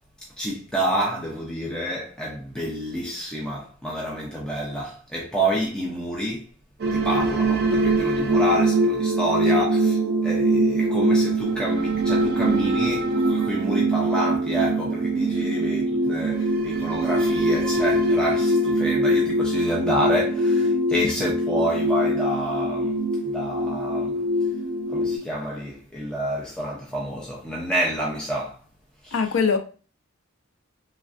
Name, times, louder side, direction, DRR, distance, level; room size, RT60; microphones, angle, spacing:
voice 1, 0.4-6.5 6.9-10.0 10.2-24.3 24.9-28.6 29.0-29.2, right 1 dB, 5° left, 0.5 m, -28 dB
sound 1, 6.8-25.2, right 1 dB, 55° right, 0.5 m, -23 dB
voice 2, 29.1-29.6, left 5 dB, 75° left, 0.5 m, -23 dB
3.1 x 2.4 x 2.4 m
head